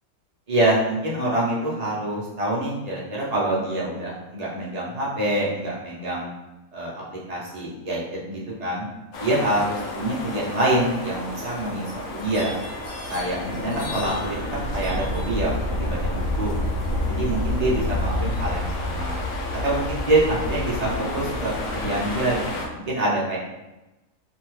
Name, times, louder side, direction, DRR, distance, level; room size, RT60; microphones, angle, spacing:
voice 1, 0.5-6.3 6.7-8.9 9.2-12.5 13.1-16.6 17.1-19.1 19.6-23.4, right 1 dB, 45° right, -6 dB, 0.5 m, -26 dB
sound 1, 9.1-22.7, left 1 dB, 70° left, 0.9 m, -29 dB
2.7 x 2.2 x 3.0 m, 1.0 s
omnidirectional pair, 1.5 m